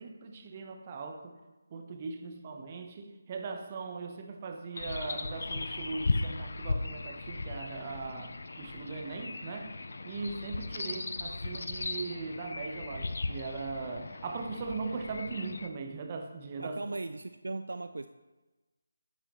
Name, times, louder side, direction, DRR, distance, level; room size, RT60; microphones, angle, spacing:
voice 1, 0.0-1.4 1.7-9.7 10.0-16.8, right 4 dB, 30° right, 5 dB, 0.9 m, -39 dB
sound 1, 4.7-15.7, left 3 dB, 60° left, 0.5 m, -37 dB
voice 2, 16.6-18.1, right 3 dB, 65° right, 10 dB, 0.3 m, -38 dB
9.0 x 8.6 x 3.1 m, 1.2 s
figure-of-eight pair, 155°, 0 cm